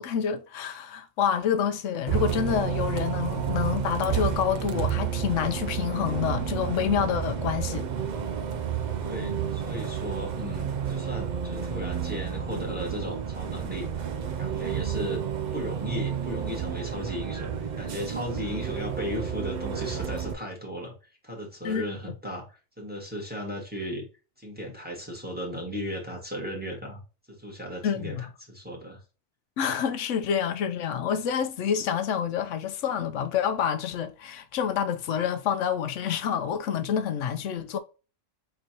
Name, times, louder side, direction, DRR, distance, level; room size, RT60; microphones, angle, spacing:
voice 1, 0.0-7.9 21.6-21.9 27.8-28.2 29.6-37.8, left 8 dB, 85° left, 1.0 m, -28 dB
Bus, 2.1-20.3, right 8 dB, 55° right, 0.5 m, -31 dB
voice 2, 9.0-13.9 14.4-15.2 15.5-20.9 21.2-24.0 24.4-27.0 27.3-29.0, equal, 10° right, 1.7 m, -36 dB
4.5 x 3.9 x 2.8 m
omnidirectional pair, 1.2 m